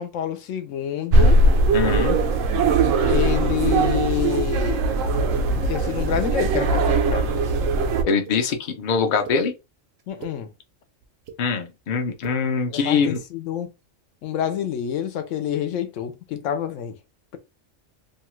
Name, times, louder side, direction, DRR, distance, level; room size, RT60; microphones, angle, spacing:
voice 1, 0.0-1.4 3.0-4.8 5.6-7.4 10.1-10.5 12.7-13.7 14.2-17.0, left 9 dB, 80° left, 0.9 m, -27 dB
sound 1, 1.1-8.0, right 2 dB, 90° right, 1.0 m, -20 dB
voice 2, 1.7-2.2 8.0-9.5 11.4-13.2, left 5 dB, 55° left, 0.6 m, -23 dB
sound 2, 8.3-8.4 9.2-9.4 10.0-10.4 11.0-11.4 12.1-12.4 13.0-13.3, right 6 dB, 65° right, 0.8 m, -40 dB
2.7 x 2.3 x 3.0 m
omnidirectional pair, 1.3 m